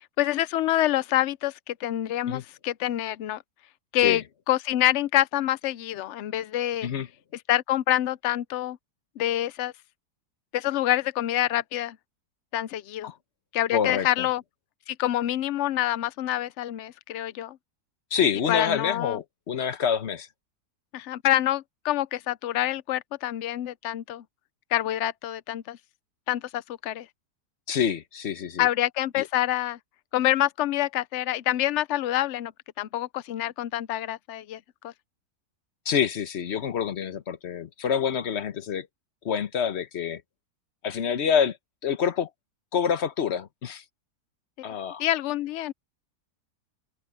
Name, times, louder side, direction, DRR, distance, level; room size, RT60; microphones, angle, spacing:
voice 1, 0.2-3.4 3.9-6.9 7.5-8.8 9.2-9.7 10.5-12.0 12.5-13.1 13.5-14.4 14.9-17.6 18.5-19.2 20.9-24.2 24.7-25.8 26.3-27.1 28.6-29.8 30.1-32.5 32.8-34.9 45.0-45.7, left 13 dB, 75° left, 0.6 m, -26 dB
voice 2, 13.7-14.3 18.1-20.3 27.7-28.7 29.2-29.3 35.9-38.9 39.2-40.2 40.8-41.6 41.8-42.3 42.7-43.8 44.6-45.0, left 7 dB, 50° left, 1.1 m, -27 dB
omnidirectional pair, 1.7 m